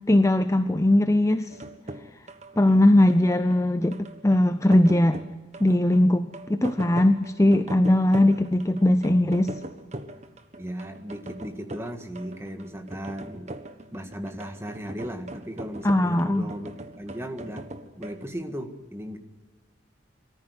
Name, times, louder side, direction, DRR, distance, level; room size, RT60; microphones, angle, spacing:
voice 1, 0.1-1.5 2.6-4.0 4.2-5.2 5.6-9.5 15.8-16.5, left 1 dB, 15° left, 10 dB, 0.6 m, -20 dB
sound 1, 1.5-18.2, right 1 dB, 35° right, 1.4 m, -41 dB
voice 2, 10.6-13.6 13.9-16.7 17.0-17.7 18.0-19.2, equal, 15° right, 6 dB, 1.9 m, -36 dB
23.5 x 14.5 x 9.7 m, 1.3 s
head